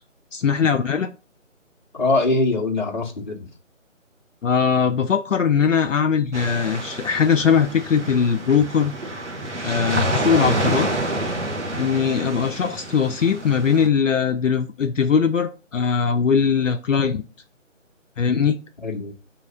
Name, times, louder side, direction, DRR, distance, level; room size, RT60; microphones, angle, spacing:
voice 1, 0.3-1.1 4.4-8.9 9.6-10.9 11.8-17.2 18.2-18.6, left 6 dB, 70° left, 0.5 m, -20 dB
voice 2, 1.9-3.5 18.8-19.2, left 2 dB, 35° left, 0.8 m, -23 dB
sound 1, 6.3-13.9, right 1 dB, 60° right, 1.2 m, -28 dB
3.8 x 2.8 x 4.9 m
figure-of-eight pair, 160°, 39 cm